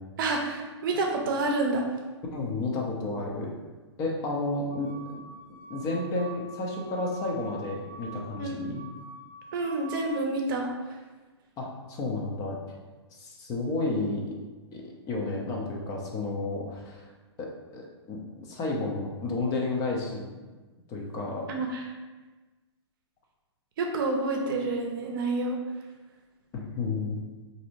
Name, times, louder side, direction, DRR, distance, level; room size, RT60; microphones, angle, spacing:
voice 1, 0.2-1.8 8.4-8.6 9.5-10.7 21.5-21.9 23.8-25.6, right 2 dB, 50° right, 2 dB, 0.6 m, -28 dB
voice 2, 2.3-3.5 4.0-5.2 5.7-8.8 11.6-12.6 13.1-14.3 14.7-17.1 17.4-20.3 20.9-21.5 26.5-27.2, left 2 dB, 25° left, -1 dB, 0.6 m, -32 dB
sound 1, 4.7-10.1, right 3 dB, 15° right, 0.9 m, -45 dB
3.9 x 2.7 x 3.0 m, 1.3 s
hypercardioid pair, 125°, 15 cm